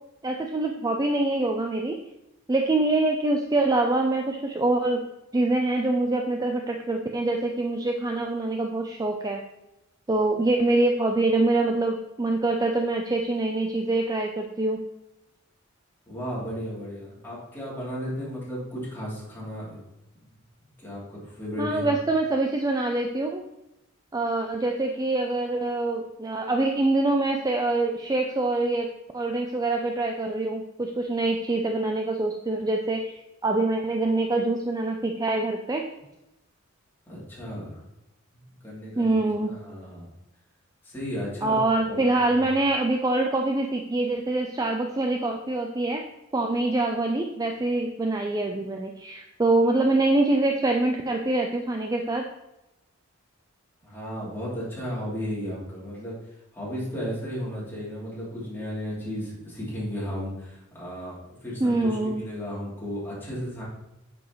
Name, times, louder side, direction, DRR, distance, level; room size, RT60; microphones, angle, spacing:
voice 1, 0.2-2.0 2.5-5.0 5.3-9.4 10.1-14.8 21.6-23.4 24.1-28.9 29.1-33.2 33.4-35.8 39.0-39.5 41.4-46.0 46.3-52.2 61.6-62.2, right 2 dB, 20° right, 2 dB, 0.5 m, -25 dB
voice 2, 16.1-19.8 20.8-22.0 37.1-37.8 38.6-40.1 40.8-42.5 53.8-56.2 56.5-63.6, equal, 10° left, -8 dB, 3.0 m, -34 dB
9.0 x 6.1 x 3.1 m, 0.92 s
head